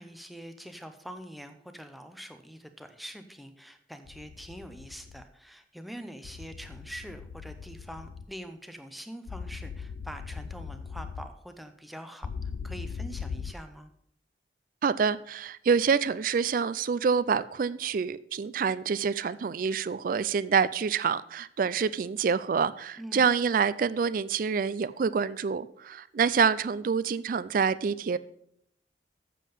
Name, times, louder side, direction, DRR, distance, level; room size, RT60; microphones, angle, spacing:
voice 1, 0.0-13.9 23.0-23.2, equal, ahead, 7 dB, 0.6 m, -44 dB
sound 1, 4.1-5.2 6.2-8.3 9.3-11.3 12.2-13.5, left 5 dB, 65° left, 0.3 m, -39 dB
voice 2, 14.8-28.2, right 6 dB, 50° right, 17 dB, 0.3 m, -27 dB
7.5 x 7.2 x 5.4 m, 0.71 s
head